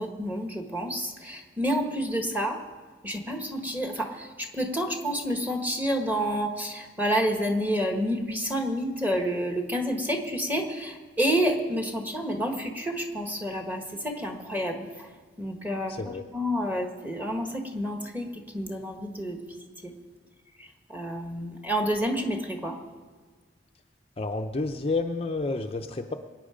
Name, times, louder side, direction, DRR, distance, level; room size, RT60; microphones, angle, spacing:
voice 1, 0.0-2.6 3.0-15.1 15.4-15.9 16.3-19.9 20.6-22.8, equal, 10° right, 3 dB, 1.5 m, -29 dB
voice 2, 15.9-16.2 24.2-26.1, left 3 dB, 30° left, 4 dB, 0.6 m, -30 dB
23.5 x 9.1 x 5.1 m, 1.4 s
head